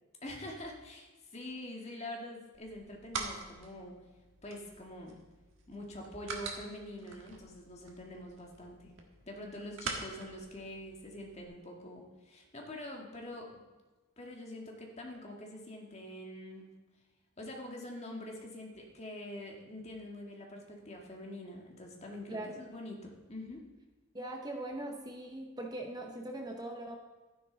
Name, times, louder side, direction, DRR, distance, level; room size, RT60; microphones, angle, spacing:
voice 1, 0.2-4.0 4.4-5.2 5.7-9.0 9.3-13.6 14.2-16.7 17.4-23.6, left 1 dB, 30° left, 0 dB, 1.7 m, -45 dB
sound 1, 2.5-11.4, right 4 dB, 70° right, 1.6 m, -45 dB
voice 2, 22.3-22.6 24.1-27.0, right 1 dB, 20° right, 2 dB, 0.8 m, -41 dB
12.0 x 10.0 x 3.9 m, 1.2 s
head